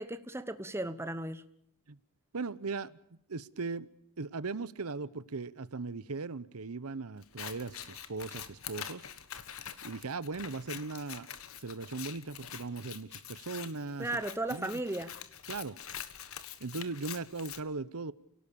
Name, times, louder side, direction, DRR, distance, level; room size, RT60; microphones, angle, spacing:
voice 1, 0.0-1.4 14.0-15.1, right 1 dB, 10° right, 1.0 m, -35 dB
voice 2, 2.3-3.9 4.2-9.1 9.8-11.3 11.6-14.2 14.5-14.8 15.5-15.8 16.6-18.1, right 3 dB, 75° right, 0.9 m, -38 dB
Scissors, 7.2-17.6, left 9 dB, 65° left, 1.6 m, -45 dB
30.0 x 18.0 x 6.9 m
head